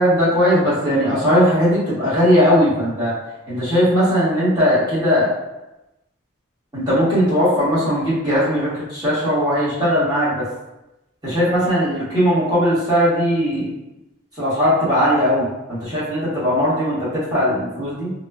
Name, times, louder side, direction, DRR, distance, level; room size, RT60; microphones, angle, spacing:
voice 1, 0.0-3.2 3.5-5.3 6.7-10.5 11.2-13.7 14.4-18.1, equal, 20° right, -10 dB, 1.1 m, -18 dB
3.0 x 2.1 x 2.2 m, 0.96 s
head